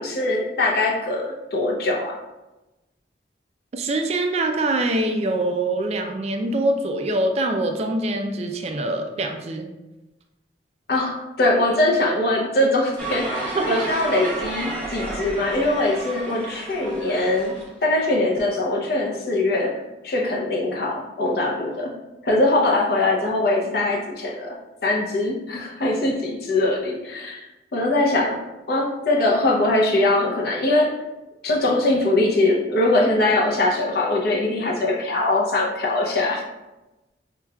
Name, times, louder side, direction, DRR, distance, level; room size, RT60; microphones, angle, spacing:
voice 1, 0.0-2.2 10.9-17.5 17.8-21.9 22.2-24.6 24.8-27.5 27.7-28.4 28.7-31.0 31.4-36.4, left 2 dB, 60° left, -1 dB, 0.6 m, -22 dB
voice 2, 3.7-9.7 13.5-13.8, right 2 dB, 35° right, 4 dB, 0.3 m, -24 dB
sound 1, 13.0-17.7, right 2 dB, 10° left, 0.8 m, -31 dB
5.7 x 2.3 x 2.3 m, 1.0 s
head